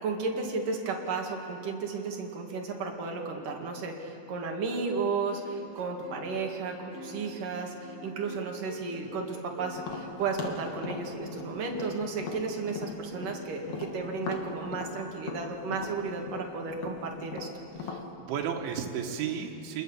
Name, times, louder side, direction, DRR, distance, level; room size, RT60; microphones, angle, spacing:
voice 1, 0.0-17.5, right 4 dB, 55° right, 1 dB, 3.3 m, -33 dB
sound 1, 5.2-14.1, right 1 dB, 20° right, 2.0 m, -47 dB
Tap, 9.8-13.4 13.7-18.1, left 5 dB, 50° left, 2.8 m, -39 dB
voice 2, 17.8-19.8, right 7 dB, 85° right, 1 dB, 3.9 m, -34 dB
28.5 x 20.5 x 7.3 m, 2.7 s
omnidirectional pair, 5.3 m